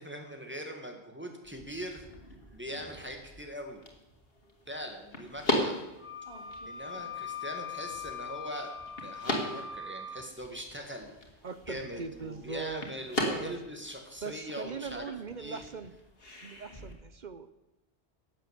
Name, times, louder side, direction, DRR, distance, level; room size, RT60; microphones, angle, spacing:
voice 1, 0.0-2.1 2.5-3.8 4.7-5.8 6.6-8.7 9.0-11.1 11.7-15.0 15.4-15.6, equal, 10° right, 3 dB, 1.8 m, -41 dB
sound 1, 1.4-16.9, left 1 dB, 60° left, 2.4 m, -39 dB
Wind instrument woodwind instrument, 6.0-10.3, left 6 dB, 10° left, 1.1 m, -41 dB
voice 2, 11.4-12.8 13.2-13.5 14.2-15.9 16.4-17.5, right 5 dB, 50° right, 12 dB, 0.7 m, -40 dB
11.5 x 7.7 x 8.2 m, 0.97 s
omnidirectional pair, 1.1 m